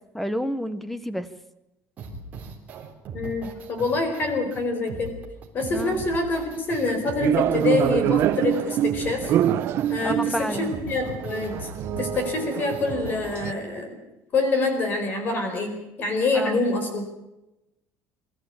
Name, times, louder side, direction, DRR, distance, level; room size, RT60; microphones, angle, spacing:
voice 1, 0.1-1.3 5.7-6.0 10.0-10.7 16.3-16.6, equal, 5° left, 14 dB, 1.0 m, -29 dB
sound 1, 2.0-13.4, right 4 dB, 25° right, 3.6 m, -39 dB
voice 2, 3.1-5.1 5.5-9.3 9.9-11.6 12.0-13.9 14.3-17.1, left 3 dB, 30° left, 6 dB, 4.6 m, -26 dB
sound 2, 7.2-13.5, right 11 dB, 45° right, 0.8 m, -25 dB
22.5 x 13.5 x 8.7 m, 0.94 s
cardioid pair, 180°, 6 cm